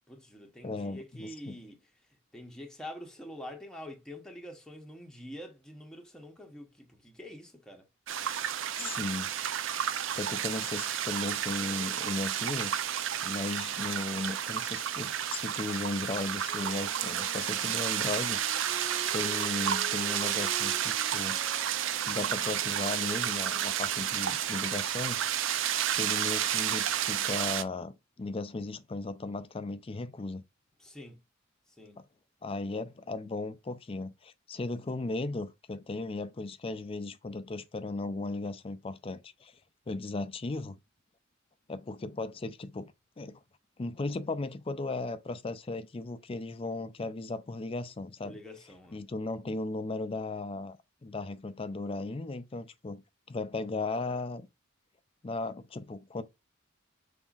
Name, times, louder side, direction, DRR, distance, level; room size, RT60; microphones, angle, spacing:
voice 1, 0.1-1.8 2.3-7.8 30.8-31.2 31.8-32.0 48.2-49.0, left 1 dB, 5° left, 0.8 m, -46 dB
voice 2, 0.6-1.6 8.8-9.3 10.1-12.7 13.2-18.4 19.1-21.4 22.1-25.5 25.9-30.4 32.4-39.5 39.9-40.8 41.7-42.9 43.2-43.4 43.8-48.4 48.9-53.0 53.3-54.4 55.2-56.2, left 3 dB, 25° left, 0.4 m, -36 dB
sound 1, 8.1-27.6, right 10 dB, 65° right, 0.4 m, -31 dB
Wind instrument woodwind instrument, 16.5-24.2, right 1 dB, 35° right, 1.4 m, -48 dB
5.5 x 3.5 x 2.4 m
head